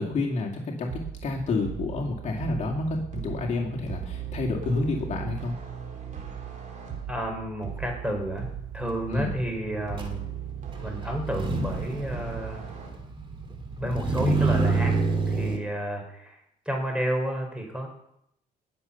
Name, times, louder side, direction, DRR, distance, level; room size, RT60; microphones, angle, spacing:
voice 1, 0.0-5.5 9.1-9.3, left 3 dB, 45° left, -1 dB, 2.2 m, -29 dB
sound 1, 0.9-12.9, right 8 dB, 50° right, 3.4 m, -38 dB
voice 2, 7.1-10.2 10.8-12.7 13.8-15.0 15.3-16.4 16.7-17.9, equal, 5° right, 2 dB, 4.1 m, -31 dB
Motor vehicle (road), 10.0-10.1 11.2-15.6, right 3 dB, 30° right, 2.4 m, -27 dB
20.0 x 7.0 x 5.5 m, 0.77 s
cardioid pair, 110°, 17 cm